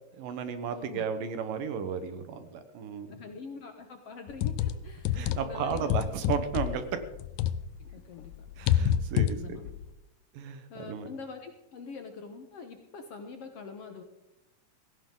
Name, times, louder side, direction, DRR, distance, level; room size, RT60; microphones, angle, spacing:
voice 1, 0.1-3.1 5.1-6.8 8.6-9.7 10.3-11.1, right 7 dB, 75° right, 9 dB, 2.9 m, -34 dB
voice 2, 0.7-1.1 3.1-5.9 7.9-8.3 9.3-9.6 10.7-14.0, left 5 dB, 60° left, 5 dB, 1.7 m, -44 dB
sound 1, 4.3-7.9 8.2-9.9, left 10 dB, 85° left, 1.6 m, -28 dB
17.0 x 16.0 x 3.9 m, 0.90 s
omnidirectional pair, 4.0 m